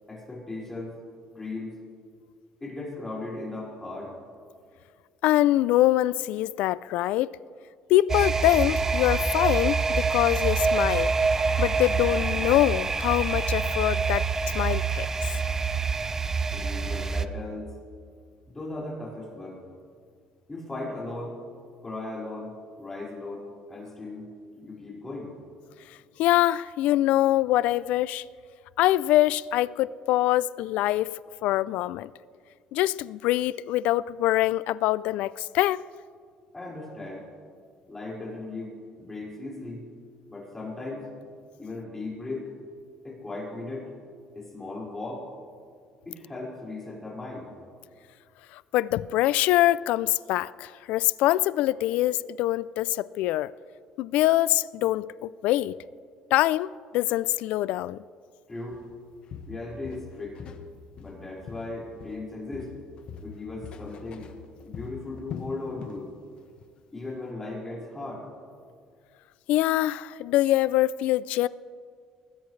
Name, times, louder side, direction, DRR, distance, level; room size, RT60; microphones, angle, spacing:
voice 1, 0.1-1.0 1.3-1.8 2.6-4.2 16.5-17.7 18.5-19.6 20.5-21.4 21.8-22.5 22.8-24.2 24.5-25.3 36.5-37.2 37.9-39.9 40.3-41.1 41.6-42.5 43.0-43.9 44.3-45.3 46.0-47.5 58.5-58.8 59.5-60.4 61.0-62.7 63.2-64.3 64.6-66.1 66.9-68.3, left 2 dB, 15° left, 5.1 m, -37 dB
voice 2, 5.2-7.3 7.9-11.1 11.6-14.3 14.5-15.3 26.2-28.2 28.8-32.1 32.7-35.8 48.5-53.5 54.0-55.8 56.3-56.7 56.9-58.0 69.5-71.5, left 15 dB, 80° left, 0.4 m, -24 dB
sound 1, 8.1-17.3, right 4 dB, 20° right, 0.6 m, -26 dB
Walk footsteps, 58.7-58.9 59.3-60.7 61.0-62.3 62.5-66.1 66.4-66.6 67.1-67.2, left 7 dB, 50° left, 1.2 m, -42 dB
23.0 x 19.5 x 3.3 m
cardioid pair, 125°, 2 cm